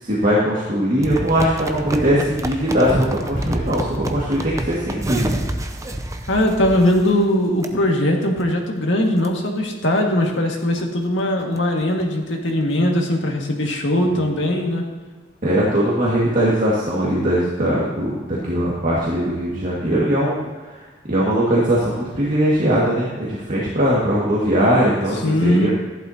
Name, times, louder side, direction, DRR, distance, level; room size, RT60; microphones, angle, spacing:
voice 1, 0.0-5.4 15.4-20.8 21.1-25.7, equal, 45° right, -6 dB, 2.0 m, -20 dB
sound 1, 1.0-7.3 7.6-7.7 8.2-8.5 8.9-9.0 9.2-9.3 9.8-10.0 10.4-10.5 10.8-10.9 11.2-12.0 12.6-12.7, right 1 dB, 15° right, 0.6 m, -27 dB
voice 2, 6.3-14.9 25.2-25.7, left 1 dB, 80° left, 1 dB, 1.9 m, -20 dB
14.5 x 11.5 x 2.9 m, 1.4 s
head